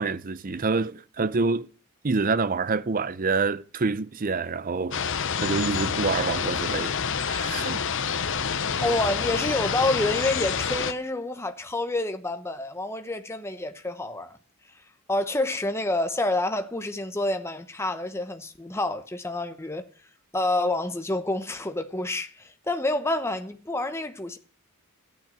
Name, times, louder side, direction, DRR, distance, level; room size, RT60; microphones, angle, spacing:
voice 1, 0.0-1.7 2.0-5.1 5.4-7.0 7.2-7.8, right 4 dB, 40° right, 0.6 m, -27 dB
sound 1, 4.9-10.9, left 6 dB, 60° left, 0.9 m, -28 dB
voice 2, 8.8-14.4 15.1-19.9 20.3-24.4, left 2 dB, 10° left, 0.9 m, -28 dB
13.5 x 9.0 x 7.3 m
head